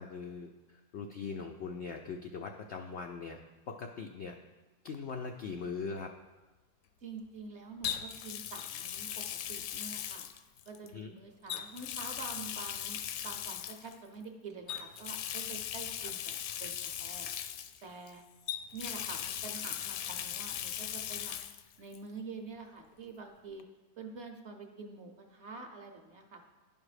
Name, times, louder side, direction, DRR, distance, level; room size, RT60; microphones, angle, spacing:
voice 1, 0.0-3.4 3.7-4.4 4.8-6.1 10.9-11.1, left 5 dB, 90° left, 3 dB, 0.5 m, -41 dB
Water tap faucet, 4.9-5.1 7.8-10.9 11.5-14.0 14.7-18.1 18.5-21.6 21.9-22.0 23.6-23.7, left 10 dB, 70° left, 0.9 m, -39 dB
voice 2, 7.0-9.1 9.5-10.3 10.7-17.3 17.8-18.2 18.7-21.4 21.8-23.7 24.0-26.4, right 4 dB, 55° right, 4 dB, 0.8 m, -47 dB
10.5 x 5.4 x 4.9 m, 1.2 s
omnidirectional pair, 1.8 m